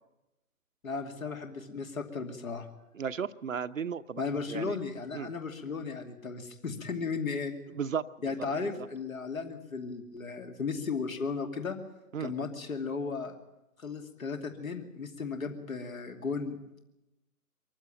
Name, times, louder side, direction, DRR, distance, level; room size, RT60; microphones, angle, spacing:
voice 1, 0.8-2.7 4.2-7.5 8.2-11.8 12.2-13.4 13.8-16.6, left 4 dB, 60° left, 5 dB, 2.8 m, -35 dB
voice 2, 2.9-4.2 4.5-4.8 5.1-5.3 7.7-8.1 8.4-8.5 8.8-8.9 12.1-12.3, right 7 dB, 55° right, 10 dB, 0.9 m, -34 dB
23.5 x 15.0 x 8.9 m, 0.92 s
figure-of-eight pair, 140°, 46 cm